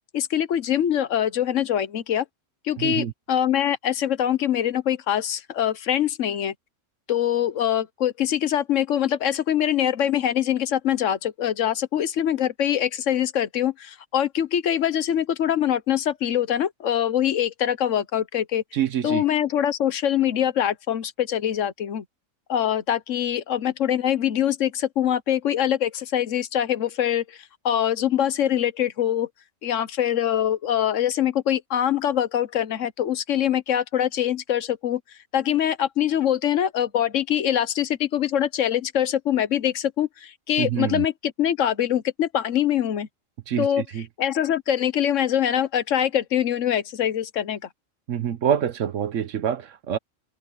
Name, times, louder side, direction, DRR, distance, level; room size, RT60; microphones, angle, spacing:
voice 1, 0.1-2.2 2.6-6.5 7.1-18.6 19.0-22.0 22.5-27.4 27.6-29.3 29.6-35.0 35.3-41.1 41.4-43.1 43.6-43.8 44.2-47.6, left 10 dB, 70° left, 1.2 m, -23 dB
voice 2, 2.8-3.1 18.7-19.2 40.6-41.1 43.5-44.1 48.1-50.0, right 9 dB, 75° right, 1.2 m, -26 dB
omnidirectional pair, 1.3 m